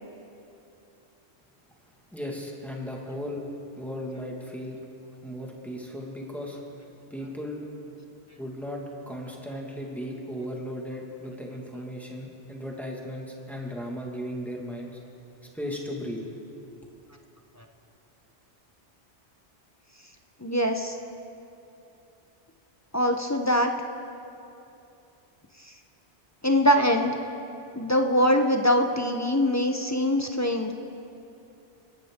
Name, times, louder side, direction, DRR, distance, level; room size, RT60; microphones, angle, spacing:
voice 1, 2.1-3.4 3.8-4.8 5.2-6.6 7.1-7.7 8.4-15.0 15.5-16.2, equal, ahead, -1 dB, 1.7 m, -36 dB
voice 2, 20.4-21.0 22.9-23.7 26.4-27.2 27.8-30.7, equal, 20° left, 4 dB, 0.6 m, -23 dB
24.0 x 11.5 x 3.6 m, 2.7 s
omnidirectional pair, 1.2 m